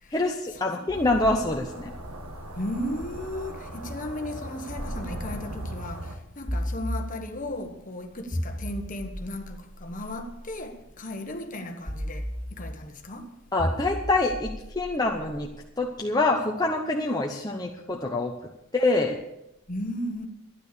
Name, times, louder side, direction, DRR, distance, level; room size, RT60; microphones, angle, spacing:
voice 1, 0.1-1.9 13.5-15.5 15.8-18.3 18.7-19.2, left 2 dB, 15° left, 0.8 m, -25 dB
sound 1, 0.9-3.6 4.8-5.8 6.5-7.6 8.3-10.6 11.9-13.0 13.6-15.7, equal, ahead, 3.6 m, -36 dB
sound 2, 0.9-6.2, right 1 dB, 80° right, 1.5 m, -39 dB
voice 2, 2.5-13.4 19.7-20.3, left 1 dB, 35° left, 1.3 m, -35 dB
12.5 x 10.0 x 6.8 m
head